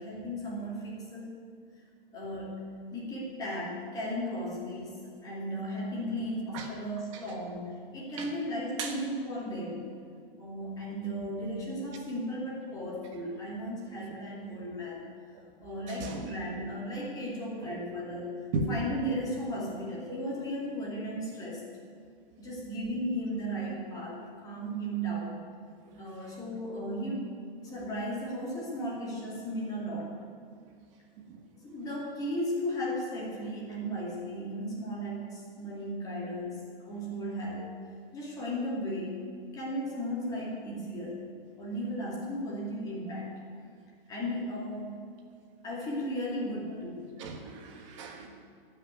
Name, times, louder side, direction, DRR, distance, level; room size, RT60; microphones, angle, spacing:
voice 1, 0.0-1.4 2.1-2.6 2.9-9.9 10.4-15.1 15.6-21.6 22.4-25.4 26.0-27.3 27.6-30.2 31.6-37.7 38.1-39.3 39.5-41.2 41.6-43.4 44.1-45.0 45.6-47.1, equal, 10° left, -4 dB, 2.3 m, -35 dB
voice 2, 47.2-48.3, right 3 dB, 30° right, 3 dB, 1.4 m, -35 dB
13.5 x 6.2 x 9.4 m, 2.2 s
hypercardioid pair, 170°, 30 cm